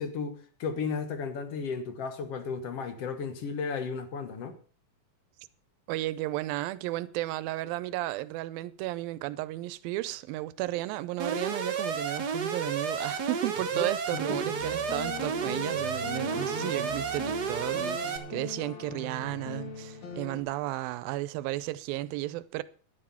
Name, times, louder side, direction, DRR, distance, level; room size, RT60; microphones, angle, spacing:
voice 1, 0.0-4.6 13.7-14.2, left 5 dB, 55° left, 1.9 m, -34 dB
voice 2, 5.9-22.6, right 17 dB, 85° right, 2.5 m, -33 dB
Alarm, 11.2-18.2, right 5 dB, 65° right, 0.9 m, -32 dB
sound 1, 14.3-20.4, left 2 dB, 90° left, 4.6 m, -40 dB
11.0 x 11.0 x 5.8 m
omnidirectional pair, 4.1 m